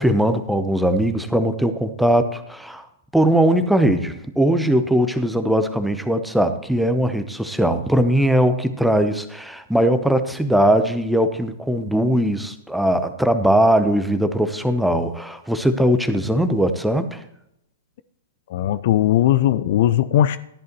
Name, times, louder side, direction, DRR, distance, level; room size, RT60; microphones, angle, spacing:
voice 1, 0.0-2.9 3.1-17.2, right 1 dB, ahead, 9 dB, 0.8 m, -20 dB
voice 2, 18.5-20.4, left 12 dB, 45° left, 15 dB, 0.4 m, -18 dB
13.5 x 10.5 x 3.0 m, 0.79 s
figure-of-eight pair, 110°, 0 cm